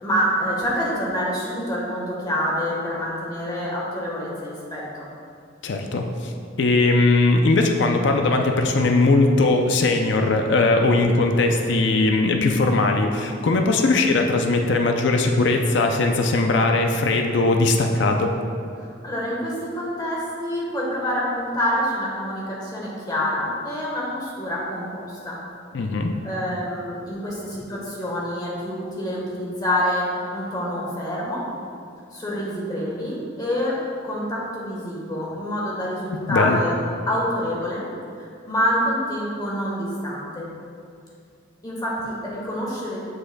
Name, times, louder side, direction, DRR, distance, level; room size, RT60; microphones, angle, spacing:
voice 1, 0.0-5.1 13.7-13.9 18.7-25.4 26.2-31.4 32.1-33.8 34.0-36.7 37.1-37.8 38.2-40.5 41.6-43.0, equal, 20° left, -5 dB, 1.3 m, -27 dB
voice 2, 5.6-6.3 6.6-18.3 25.7-26.2 36.3-36.6, left 2 dB, 65° left, 3 dB, 0.4 m, -19 dB
7.6 x 6.2 x 2.2 m, 2.3 s
head